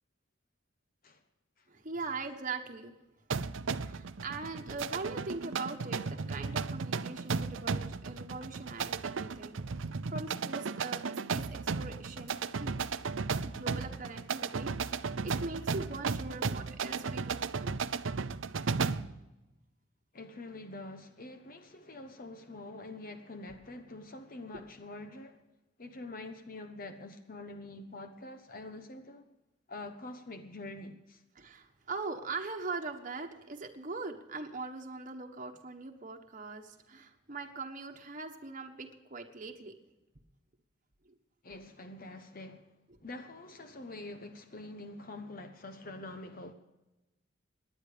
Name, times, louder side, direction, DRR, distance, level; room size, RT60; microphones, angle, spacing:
voice 1, 1.7-3.0 3.4-3.5 3.8-12.7 13.4-17.7 31.3-39.7 41.0-41.1, right 3 dB, 40° right, 1.3 m, -41 dB
sound 1, 3.3-19.2, right 5 dB, 85° right, 0.6 m, -35 dB
voice 2, 20.1-25.4 25.8-29.3 29.7-31.2 41.4-42.7 43.0-46.5, left 2 dB, 45° left, 1.0 m, -45 dB
18.5 x 10.5 x 5.0 m
head